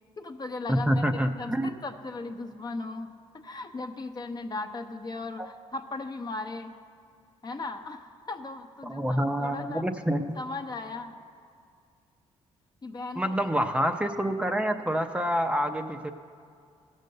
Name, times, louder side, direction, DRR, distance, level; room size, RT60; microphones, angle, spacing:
voice 1, 0.2-6.8 7.4-9.9 10.3-11.2 12.8-13.3, left 3 dB, 35° left, 6 dB, 0.8 m, -37 dB
voice 2, 0.7-1.7 8.8-10.2 13.2-16.1, equal, 10° right, 6 dB, 0.6 m, -27 dB
15.5 x 6.6 x 6.6 m, 2.3 s
cardioid pair, 90°, 12 cm